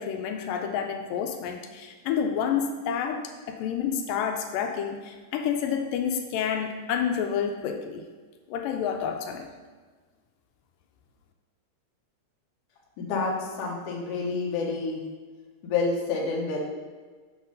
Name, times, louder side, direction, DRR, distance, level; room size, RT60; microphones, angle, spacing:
voice 1, 0.0-8.1 8.5-9.5, left 7 dB, 85° left, 5 dB, 2.2 m, -29 dB
voice 2, 13.0-13.3 13.6-15.0 15.6-16.6, left 4 dB, 65° left, -2 dB, 1.6 m, -28 dB
6.3 x 3.9 x 5.3 m, 1.4 s
omnidirectional pair, 3.9 m